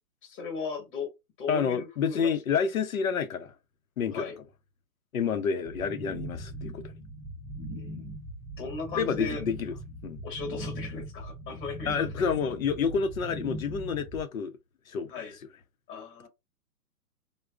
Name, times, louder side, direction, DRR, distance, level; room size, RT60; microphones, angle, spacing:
voice 1, 0.2-1.1 1.4-2.3 4.1-4.4 7.7-8.2 8.6-9.4 10.2-12.3 15.1-15.3 15.9-16.3, left 4 dB, 20° left, 1.1 m, -37 dB
voice 2, 1.5-3.5 4.0-4.2 5.1-6.9 8.9-9.8 10.0-10.2 11.9-14.5 14.9-15.1, left 6 dB, 60° left, 0.7 m, -29 dB
sound 1, 5.6-14.2, right 1 dB, 5° right, 0.5 m, -40 dB
3.8 x 2.2 x 2.3 m
hypercardioid pair, 150°, 47 cm